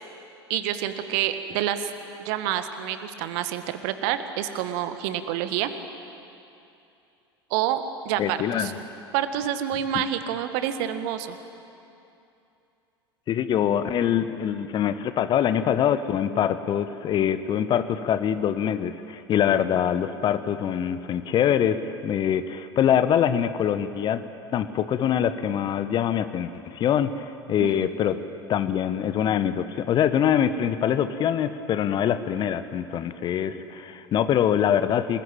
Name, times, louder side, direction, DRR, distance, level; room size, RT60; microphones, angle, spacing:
voice 1, 0.5-1.9 2.2-5.7 7.5-8.7 9.1-11.4 27.6-27.9, right 10 dB, 50° right, 10 dB, 1.7 m, -28 dB
voice 2, 8.2-8.8 9.9-10.0 13.3-24.2 24.5-28.2 28.5-35.2, left 9 dB, 35° left, 12 dB, 1.2 m, -24 dB
27.5 x 20.5 x 9.0 m, 2.7 s
figure-of-eight pair, 75°, 14 cm